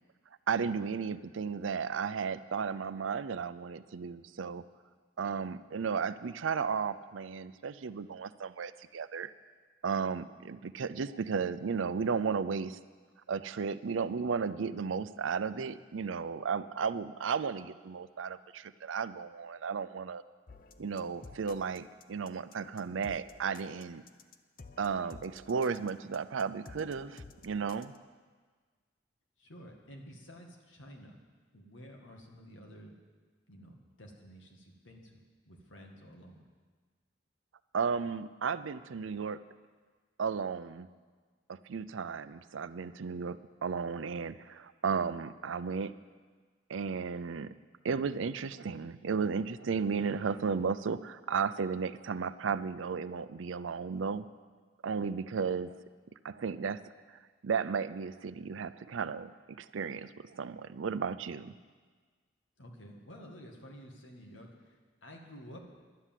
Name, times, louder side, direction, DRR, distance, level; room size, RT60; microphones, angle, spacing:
voice 1, 0.5-4.6 5.2-9.3 9.8-12.8 13.3-20.2 20.8-24.0 24.8-27.9 37.7-39.4 40.2-40.9 41.5-43.4 43.6-45.9 46.7-47.5 47.8-54.3 54.8-55.8 56.2-56.8 57.4-61.5, right 5 dB, 90° right, 14 dB, 0.5 m, -34 dB
sound 1, 20.5-28.0, left 3 dB, 45° left, 0.6 m, -53 dB
voice 2, 29.4-31.2 31.5-32.9 33.5-36.4 62.6-65.7, equal, 85° left, 1 dB, 2.0 m, -51 dB
11.5 x 9.8 x 7.5 m, 1.5 s
head